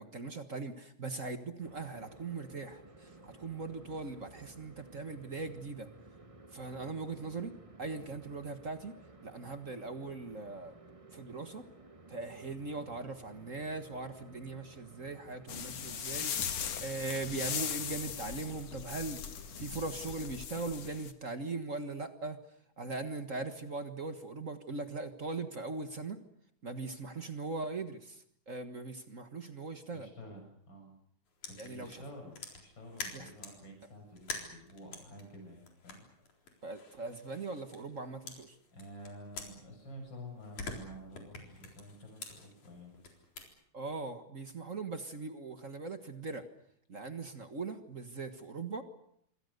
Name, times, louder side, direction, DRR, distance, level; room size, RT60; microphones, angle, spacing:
voice 1, 0.0-5.9 6.5-7.5 7.8-9.0 9.2-10.7 11.1-11.7 12.1-16.3 16.8-22.4 22.8-26.2 26.6-30.1 31.6-32.0 33.1-33.2 36.6-38.5 43.7-46.5 46.9-48.8, right 3 dB, 40° right, 8 dB, 1.3 m, -40 dB
sound 1, 1.6-20.5, right 2 dB, 60° right, 0.3 m, -56 dB
sound 2, 15.5-21.1, left 8 dB, 60° left, 2.7 m, -39 dB
voice 2, 29.9-30.9 31.5-36.0 36.4-36.6 38.7-42.9, equal, 40° left, 2 dB, 7.6 m, -50 dB
sound 3, 31.4-33.6 34.1-38.0 38.3-40.1 40.4-43.5, left 4 dB, 80° left, 5.4 m, -46 dB
26.5 x 25.5 x 6.8 m, 0.71 s
omnidirectional pair, 3.3 m